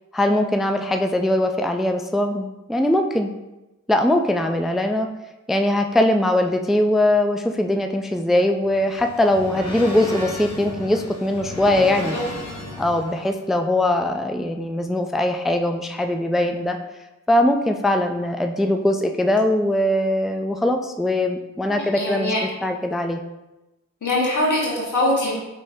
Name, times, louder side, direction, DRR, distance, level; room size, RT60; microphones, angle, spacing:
voice 1, 0.1-3.3 3.9-5.1 5.5-12.2 12.8-16.8 17.3-22.3 22.6-23.2, left 1 dB, ahead, 5 dB, 0.3 m, -21 dB
sound 1, 8.4-13.3, left 1 dB, 60° left, 1.2 m, -34 dB
voice 2, 21.7-22.4 24.0-25.3, left 1 dB, 85° left, -5 dB, 1.5 m, -22 dB
5.2 x 3.6 x 2.7 m, 1.0 s
cardioid pair, 60°, 30 cm